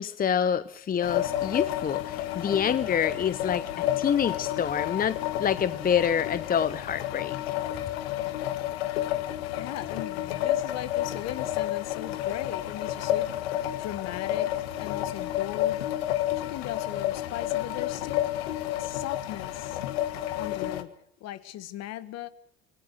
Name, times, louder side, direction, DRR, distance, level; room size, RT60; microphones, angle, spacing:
voice 1, 0.0-3.6 4.0-7.3, left 8 dB, 30° left, 16 dB, 0.8 m, -27 dB
sound 1, 1.0-20.8, left 13 dB, 80° left, 1.5 m, -30 dB
voice 2, 9.5-14.5 14.8-15.9 16.3-18.3 18.8-19.8 20.4-20.9 21.2-22.3, left 13 dB, 55° left, 15 dB, 1.7 m, -38 dB
26.0 x 18.0 x 6.6 m, 0.67 s
hypercardioid pair, 70°, 30 cm